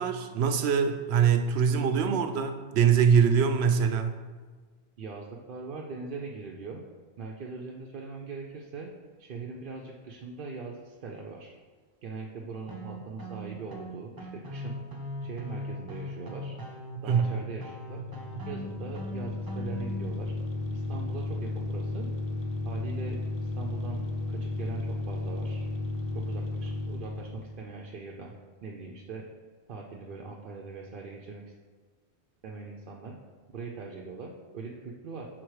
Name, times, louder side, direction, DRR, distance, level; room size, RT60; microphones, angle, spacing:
voice 1, 0.0-4.2 17.1-17.4, right 7 dB, 90° right, 7 dB, 0.9 m, -23 dB
voice 2, 5.0-6.8 7.2-8.9 9.2-11.6 12.0-14.8 15.2-16.5 17.0-18.0 18.4-20.3 20.7-22.1 22.6-23.2 23.6-25.7 26.1-28.3 28.6-29.2 29.7-31.4 32.4-33.1 33.5-35.3, right 4 dB, 60° right, -1 dB, 0.7 m, -41 dB
sound 1, 12.7-20.1, equal, 25° right, 0.6 m, -39 dB
sound 2, 17.8-27.6, left 2 dB, 70° left, 0.8 m, -34 dB
6.3 x 3.9 x 4.7 m, 1.4 s
omnidirectional pair, 1.0 m